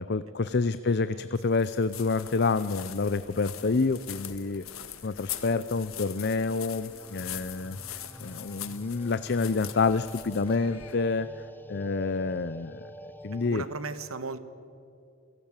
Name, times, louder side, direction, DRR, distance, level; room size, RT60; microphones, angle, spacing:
voice 1, 0.0-4.6 5.0-11.3 11.7-13.6, left 4 dB, 50° left, 13 dB, 0.6 m, -28 dB
sound 1, 1.4-11.2, left 11 dB, 85° left, 1.7 m, -42 dB
sound 2, 3.1-13.5, equal, 10° left, 0.9 m, -48 dB
voice 2, 13.3-14.4, right 3 dB, 90° right, 12 dB, 1.5 m, -38 dB
28.5 x 18.0 x 9.0 m, 2.6 s
head